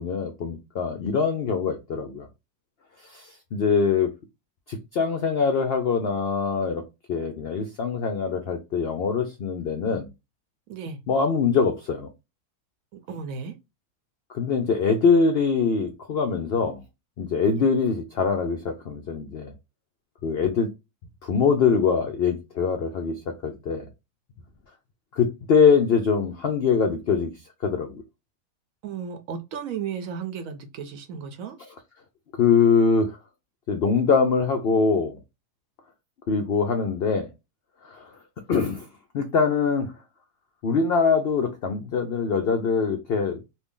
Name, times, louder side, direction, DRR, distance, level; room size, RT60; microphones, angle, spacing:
voice 1, 0.0-2.3 3.1-4.1 4.7-6.8 7.1-10.1 11.1-12.1 14.3-16.8 17.2-19.5 20.2-20.7 21.2-23.9 25.1-27.3 27.6-28.0 32.4-33.2 33.7-35.2 36.3-37.3 37.8-38.1 38.5-38.9 39.1-39.9 40.6-43.4, left 5 dB, 75° left, 0.5 m, -23 dB
voice 2, 10.7-11.0 12.9-13.6 17.5-17.7 28.8-31.6, right 6 dB, 70° right, 0.9 m, -34 dB
2.7 x 2.7 x 3.5 m
omnidirectional pair, 1.7 m